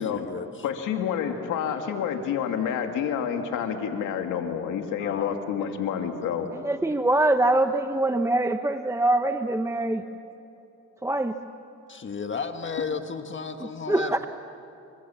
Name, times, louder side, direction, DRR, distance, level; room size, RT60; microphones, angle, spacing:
voice 1, 0.0-0.6 5.0-6.5 11.9-14.3, left 5 dB, 40° left, 6 dB, 1.6 m, -35 dB
voice 2, 0.6-6.5, left 8 dB, 90° left, 4 dB, 2.5 m, -28 dB
voice 3, 6.5-10.0 11.0-11.3 13.9-14.3, right 2 dB, 10° right, 7 dB, 1.0 m, -23 dB
28.0 x 26.0 x 7.4 m, 2.8 s
cardioid pair, 90°, 30 cm